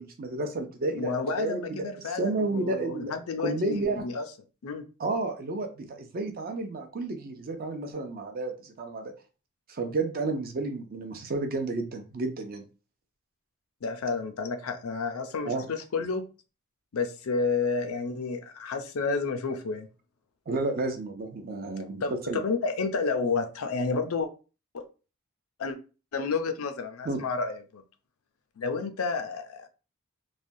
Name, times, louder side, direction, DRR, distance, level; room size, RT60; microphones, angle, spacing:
voice 1, 0.0-1.8 2.2-3.2 3.4-4.0 5.0-9.1 9.7-12.6 15.4-15.7 20.5-22.4 27.0-27.2, right 2 dB, 45° right, 0.5 m, -31 dB
voice 2, 0.9-4.3 4.6-4.8 13.8-16.2 16.9-19.9 22.0-24.3 24.7-24.8 25.6-25.8 26.1-27.8 28.6-29.7, left 4 dB, 75° left, 0.5 m, -30 dB
3.2 x 2.2 x 2.6 m
head